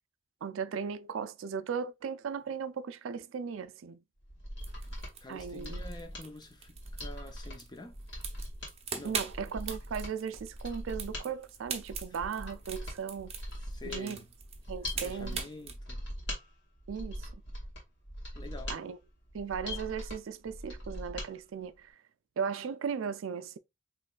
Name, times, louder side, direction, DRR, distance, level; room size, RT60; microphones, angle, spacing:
voice 1, 0.4-4.0 5.3-5.9 9.0-13.3 13.8-14.2 14.7-15.5 16.9-17.3 18.7-19.0 19.3-21.9 22.4-23.6, right 6 dB, 80° right, 0.4 m, -37 dB
Mechanisms, 4.2-21.3 21.6-21.7, equal, 60° left, 2.0 m, -41 dB
sound 1, 4.6-15.8, right 6 dB, 30° right, 0.6 m, -43 dB
voice 2, 5.2-8.0 8.9-9.3 13.6-14.3 14.9-16.1 18.3-18.8, left 2 dB, 20° left, 0.6 m, -47 dB
5.1 x 3.1 x 2.3 m
head